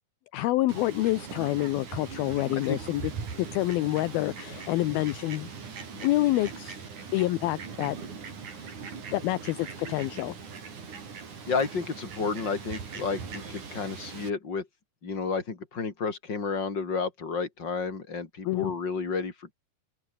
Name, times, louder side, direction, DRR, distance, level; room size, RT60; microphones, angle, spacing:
voice 1, 0.3-3.0 3.4-5.5 5.9-6.8 7.1-8.0 8.6-8.7 9.1-10.4 18.4-18.7, left 17 dB, 75° left, 2.6 m, -27 dB
Fowl, 0.7-14.3, right 5 dB, 50° right, 5.5 m, -41 dB
voice 2, 11.5-14.7 15.0-19.5, left 5 dB, 25° left, 4.2 m, -31 dB
open air
omnidirectional pair, 4.7 m